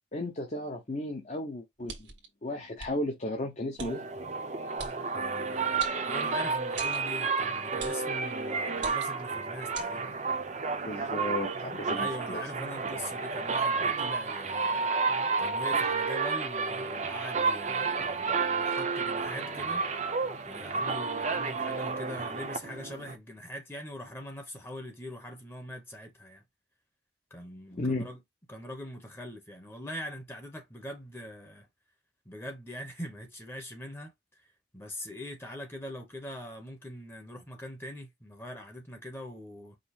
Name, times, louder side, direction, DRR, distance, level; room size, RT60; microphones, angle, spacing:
voice 1, 0.1-2.1 2.4-4.0 10.8-12.4 27.8-28.1, left 1 dB, 40° left, 0.9 m, -34 dB
sound 1, 1.9-2.3 2.8-2.9 3.8-3.9 4.8-5.0 5.8-6.4 6.8-7.0 7.8-8.1 8.8-9.2 9.7-9.9, right 5 dB, 90° right, 1.4 m, -41 dB
sound 2, 3.8-23.2, right 4 dB, 40° right, 0.7 m, -31 dB
voice 2, 5.1-10.2 11.9-14.9 15.4-19.8 20.4-26.4 27.3-28.2 28.5-31.7 32.2-39.8, left 1 dB, 15° left, 0.9 m, -42 dB
5.1 x 2.1 x 4.2 m
head